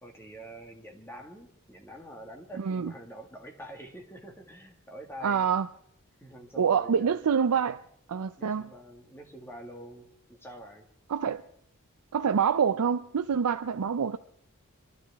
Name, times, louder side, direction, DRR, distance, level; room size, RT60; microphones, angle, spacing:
voice 1, 0.0-5.5 6.2-7.6 8.4-10.9, right 1 dB, 10° left, 1.8 m, -46 dB
voice 2, 2.6-2.9 5.2-5.7 6.6-7.8 8.1-8.7 11.1-11.4 12.1-14.2, right 7 dB, 85° right, 0.5 m, -26 dB
25.0 x 12.5 x 3.5 m
head